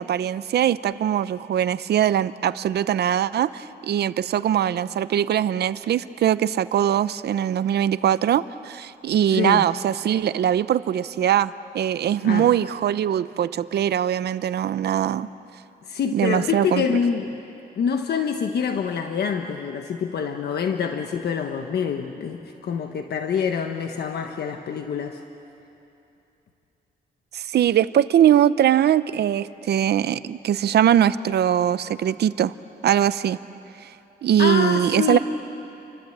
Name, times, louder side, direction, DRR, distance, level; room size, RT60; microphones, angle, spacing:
voice 1, 0.0-15.3 16.1-17.0 27.3-32.5 32.8-33.4 34.2-35.2, right 10 dB, 85° right, 15 dB, 0.7 m, -21 dB
voice 2, 9.3-9.6 12.2-12.5 15.9-17.4 17.8-25.2 34.4-35.2, left 7 dB, 75° left, 5 dB, 1.3 m, -26 dB
29.5 x 24.5 x 8.0 m, 2.8 s
wide cardioid pair, 140°, 17 cm